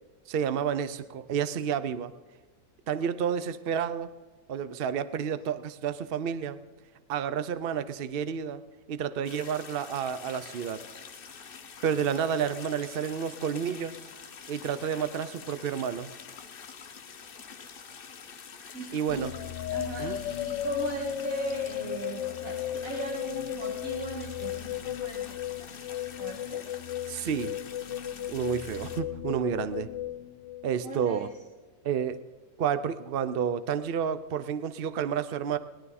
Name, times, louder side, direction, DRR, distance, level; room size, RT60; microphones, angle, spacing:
voice 1, 0.3-2.1 2.9-4.1 4.5-6.6 7.1-8.6 8.9-10.8 11.8-13.9 14.5-16.1 18.9-19.3 20.0-20.2 27.1-27.6 28.3-29.9 30.6-31.3 31.8-32.2 32.6-35.6, right 8 dB, 85° right, 12 dB, 0.5 m, -30 dB
sound 1, 9.2-29.0, left 6 dB, 50° left, 0.7 m, -46 dB
voice 2, 18.7-19.3 19.7-26.7 30.8-31.3, right 2 dB, 50° right, -1 dB, 2.4 m, -38 dB
sound 2, 19.1-31.1, left 12 dB, 85° left, 1.3 m, -35 dB
19.5 x 11.5 x 4.2 m, 1.3 s
omnidirectional pair, 1.9 m